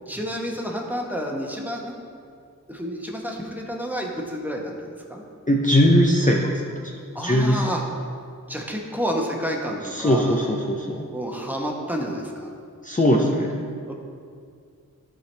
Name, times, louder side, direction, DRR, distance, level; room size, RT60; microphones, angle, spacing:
voice 1, 0.1-2.0 2.7-5.2 7.1-7.9 8.5-10.5 11.1-12.5 13.9-14.0, equal, 5° right, -1 dB, 1.1 m, -30 dB
voice 2, 5.5-6.5 6.8-6.9 7.2-7.7 9.9-11.0 12.8-13.6, equal, 25° left, -1 dB, 0.7 m, -20 dB
14.0 x 4.8 x 3.3 m, 2.2 s
wide cardioid pair, 75°, 33 cm